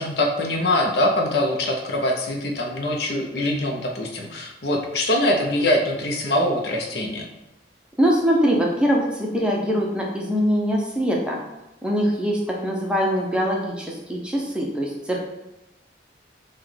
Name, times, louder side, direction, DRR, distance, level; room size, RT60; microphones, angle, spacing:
voice 1, 0.0-7.3, left 1 dB, 65° left, 1 dB, 0.6 m, -23 dB
voice 2, 8.0-11.4 11.8-15.2, equal, 5° right, -2 dB, 0.5 m, -22 dB
5.8 x 2.2 x 3.2 m, 0.95 s
head